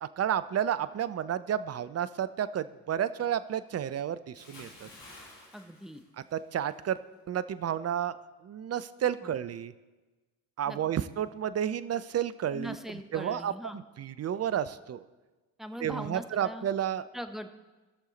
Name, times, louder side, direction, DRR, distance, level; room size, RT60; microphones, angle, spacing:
voice 1, 0.0-4.9 6.3-7.0 7.3-8.1 8.4-9.7 10.6-15.0 15.8-17.0, right 9 dB, 35° right, 14 dB, 0.5 m, -31 dB
Bathtub (filling or washing) / Splash splatter, 4.3-6.8 7.1-7.4, left 2 dB, 85° left, 2.3 m, -51 dB
voice 2, 5.5-6.0 9.2-9.4 10.7-10.8 12.5-13.8 15.6-16.7 17.1-17.5, equal, ahead, 8 dB, 0.8 m, -41 dB
15.5 x 6.4 x 4.0 m, 1.2 s
hypercardioid pair, 45°, 48 cm